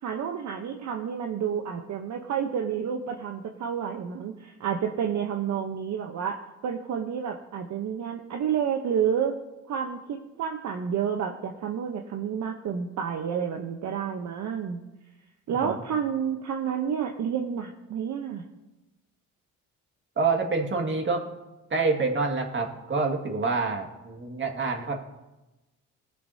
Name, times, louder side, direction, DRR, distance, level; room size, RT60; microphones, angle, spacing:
voice 1, 0.0-6.4 6.6-9.3 9.7-14.8 15.5-18.4, right 8 dB, 60° right, 3 dB, 0.9 m, -30 dB
voice 2, 20.2-21.2 21.7-24.9, right 4 dB, 35° right, 2 dB, 2.0 m, -27 dB
19.0 x 6.7 x 2.8 m, 1.0 s
cardioid pair, 85°, 32 cm